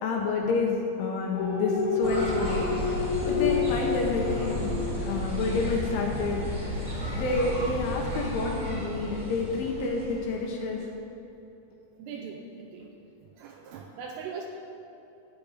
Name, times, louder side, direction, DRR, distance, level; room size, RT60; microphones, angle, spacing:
voice 1, 0.0-2.7 3.3-4.7 5.0-6.4 7.2-10.9, left 3 dB, 75° left, 0 dB, 3.3 m, -29 dB
sound 1, 1.3-5.8 6.2-6.3, left 5 dB, 40° left, 3.8 m, -30 dB
sound 2, 2.0-10.4, equal, 60° right, 0.8 m, -33 dB
voice 2, 8.1-8.6 12.0-12.9 13.4-14.4, right 6 dB, 80° right, 0 dB, 3.2 m, -41 dB
14.5 x 5.2 x 9.3 m, 2.8 s
omnidirectional pair, 6.0 m